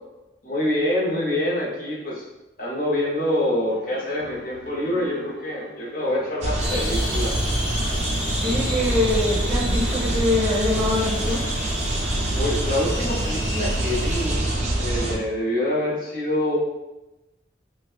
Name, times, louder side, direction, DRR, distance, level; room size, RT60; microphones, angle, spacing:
voice 1, 0.4-2.2 2.6-7.4 12.3-16.6, left 1 dB, 50° left, -4 dB, 0.8 m, -26 dB
sound 1, 3.7-14.4, right 1 dB, 85° left, 0.7 m, -44 dB
sound 2, 6.4-15.2, right 1 dB, 40° right, 0.4 m, -25 dB
sound 3, 6.6-14.3, left 1 dB, 65° left, 1.3 m, -33 dB
voice 2, 8.4-11.5, left 2 dB, 5° right, -12 dB, 1.0 m, -24 dB
4.0 x 2.2 x 2.4 m, 0.99 s
head